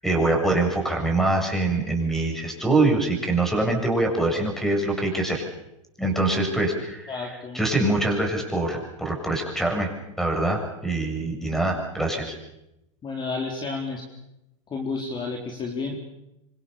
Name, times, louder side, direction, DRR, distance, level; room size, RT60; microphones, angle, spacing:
voice 1, 0.0-5.4 6.0-7.3 7.5-9.9 10.2-12.4, right 2 dB, ahead, 3 dB, 7.8 m, -24 dB
voice 2, 7.1-7.6 13.0-14.0 14.7-16.0, left 4 dB, 25° left, 1 dB, 4.2 m, -31 dB
25.5 x 25.5 x 7.0 m, 0.90 s
hypercardioid pair, 110°, 17 cm